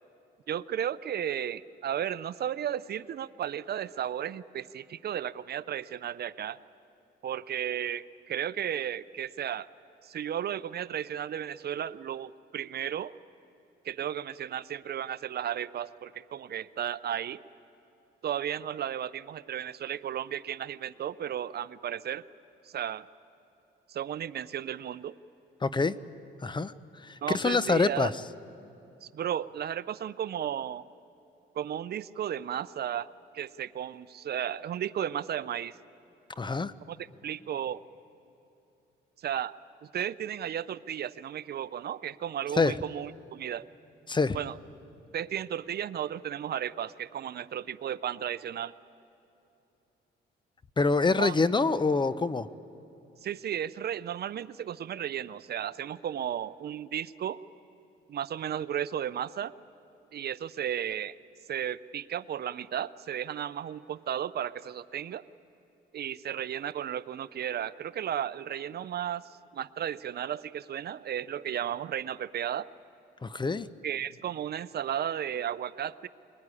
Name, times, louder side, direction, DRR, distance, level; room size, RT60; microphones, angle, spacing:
voice 1, 0.5-6.6 7.2-9.7 10.0-13.1 13.8-17.4 18.2-22.2 22.7-23.1 23.9-25.2 27.2-28.1 29.0-30.8 31.5-33.1 33.3-35.8 36.9-37.0 37.2-37.8 39.2-39.5 39.9-43.7 44.3-44.5 45.1-48.7 51.2-51.3 53.2-57.4 58.1-59.5 60.1-61.1 61.5-65.2 65.9-72.7 73.8-76.1, right 10 dB, 55° right, 16 dB, 0.6 m, -34 dB
voice 2, 25.6-26.0 26.4-28.1 36.4-36.7 42.6-42.8 44.1-44.4 50.8-52.5 73.2-73.7, left 3 dB, 25° left, 15 dB, 0.7 m, -26 dB
22.0 x 20.5 x 9.8 m, 2.8 s
cardioid pair, 90°, 20 cm